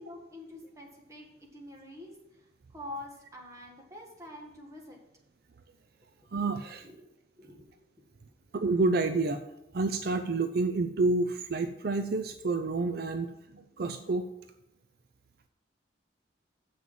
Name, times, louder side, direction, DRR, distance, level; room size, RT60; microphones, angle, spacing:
voice 1, 0.0-2.1 2.4-2.5 2.7-5.0 6.8-7.0 7.3-7.7 8.0-8.1, left 1 dB, 20° right, 0 dB, 1.8 m, -46 dB
voice 2, 6.3-6.8 8.5-9.4 9.7-14.2, right 3 dB, 60° right, 8 dB, 0.5 m, -29 dB
7.5 x 6.0 x 7.4 m, 0.89 s
head